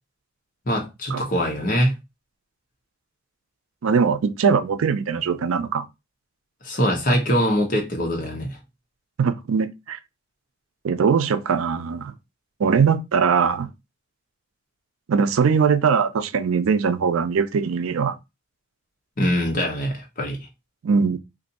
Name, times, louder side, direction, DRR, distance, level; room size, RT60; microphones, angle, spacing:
voice 1, 0.7-1.9 6.6-8.6 19.2-20.4, equal, 45° left, 1.0 m, -23 dB
voice 2, 3.8-5.8 9.2-10.0 10.8-12.1 12.6-13.7 15.1-18.2 20.8-21.2, right 6 dB, 85° right, 0.4 m, -21 dB
2.6 x 2.6 x 4.0 m
head